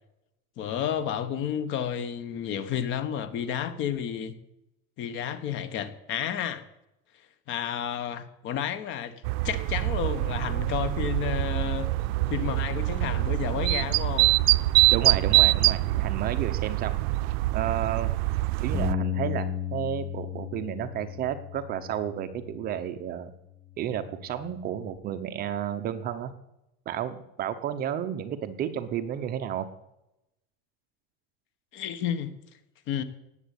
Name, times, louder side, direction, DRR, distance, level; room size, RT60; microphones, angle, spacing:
voice 1, 0.6-4.3 5.0-6.7 7.5-11.9 12.3-14.3 31.7-32.3 32.9-33.0, left 9 dB, 40° left, 12 dB, 1.3 m, -31 dB
sound 1, 9.2-18.9, right 20 dB, 80° right, 0.5 m, -24 dB
voice 2, 14.9-17.0 17.5-18.1 18.6-23.3 23.8-26.3 26.9-29.7, right 10 dB, 30° right, 10 dB, 0.8 m, -32 dB
Bass guitar, 18.7-23.2 23.8-25.0, left 9 dB, 15° left, 1.0 m, -35 dB
18.5 x 8.0 x 8.4 m, 0.89 s
cardioid pair, 175°, 31 cm